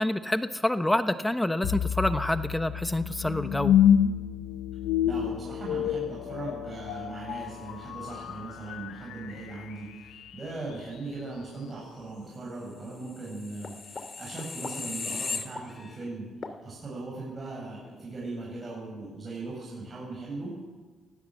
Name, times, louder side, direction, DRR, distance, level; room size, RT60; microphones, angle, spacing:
voice 1, 0.0-3.8, left 1 dB, 10° left, 10 dB, 1.0 m, -27 dB
sound 1, 1.6-10.7, left 9 dB, 85° left, 0.9 m, -28 dB
voice 2, 5.0-16.3 16.6-20.5, right 3 dB, 30° right, -4 dB, 7.8 m, -39 dB
sound 2, 13.1-16.0 16.4-16.6, left 4 dB, 40° left, 2.2 m, -37 dB
19.5 x 17.0 x 7.7 m, 1.3 s
cardioid pair, 90°, 0 cm